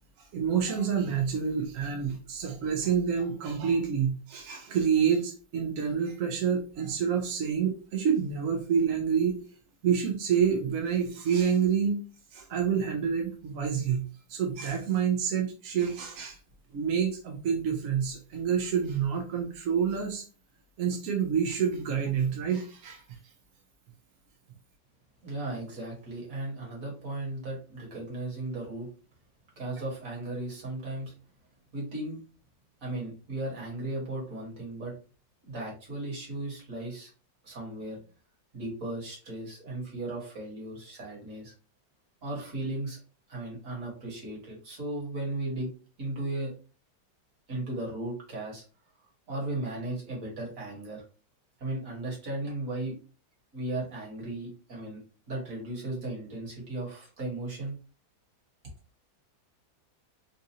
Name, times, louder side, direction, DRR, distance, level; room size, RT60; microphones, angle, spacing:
voice 1, 0.2-9.5 9.8-12.0 12.3-14.0 14.3-16.4 16.7-20.2 20.8-23.2, right 7 dB, 65° right, 2 dB, 0.8 m, -28 dB
voice 2, 25.2-28.9 29.6-31.1 31.7-32.2 32.8-34.9 35.4-37.1 37.4-38.0 38.5-41.5 42.2-43.0 43.3-45.7 46.0-46.5 47.5-48.6 49.3-51.0 51.6-53.0 53.5-55.0 55.3-57.8, right 2 dB, 50° right, -3 dB, 1.7 m, -36 dB
4.0 x 2.5 x 2.7 m, 0.36 s
omnidirectional pair, 2.0 m